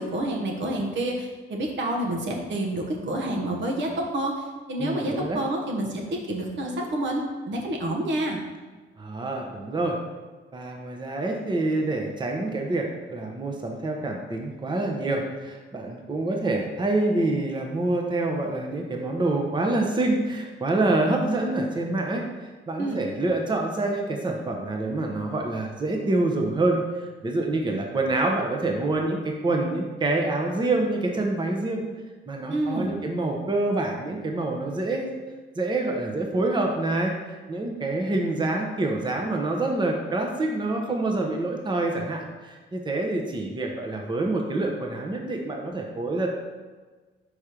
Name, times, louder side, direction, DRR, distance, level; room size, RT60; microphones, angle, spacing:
voice 1, 0.0-8.4 22.8-23.0 32.5-32.9, right 1 dB, 70° right, 0 dB, 1.2 m, -28 dB
voice 2, 4.8-5.4 9.0-10.0 10.5-22.2 22.7-31.8 32.3-35.1 35.6-46.3, right 2 dB, 25° right, 1 dB, 0.8 m, -26 dB
4.9 x 4.3 x 5.0 m, 1.3 s
cardioid pair, 90°, 20 cm